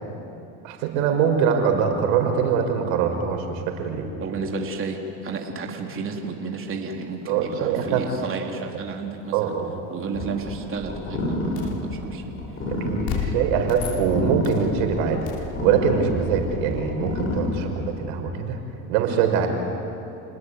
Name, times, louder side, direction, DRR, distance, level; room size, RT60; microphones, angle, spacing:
voice 1, 0.6-4.1 7.3-8.0 9.3-9.7 12.8-15.2 15.6-18.6 18.9-19.5, right 7 dB, 70° right, 4 dB, 5.5 m, -23 dB
voice 2, 4.2-9.6 9.9-12.4, right 4 dB, 30° right, 1 dB, 3.5 m, -32 dB
sound 1, 10.1-17.7, left 1 dB, 30° left, 7.5 m, -30 dB
sound 2, 11.6-11.8 13.0-14.7 15.3-15.5, left 8 dB, 60° left, 3.4 m, -32 dB
29.5 x 20.0 x 9.8 m, 2.7 s
supercardioid pair, 110°, 42 cm